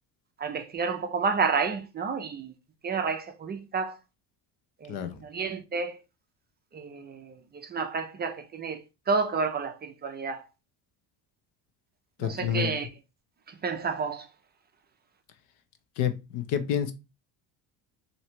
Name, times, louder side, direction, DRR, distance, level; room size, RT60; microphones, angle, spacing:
voice 1, 0.4-2.5 2.8-4.0 4.8-6.0 6.7-10.5 12.2-12.9 13.6-14.3, right 5 dB, 25° right, 0.4 m, -30 dB
voice 2, 4.9-5.2 12.2-12.7 16.0-16.9, left 9 dB, 75° left, 0.8 m, -29 dB
3.0 x 2.8 x 4.4 m
cardioid pair, 135°, 41 cm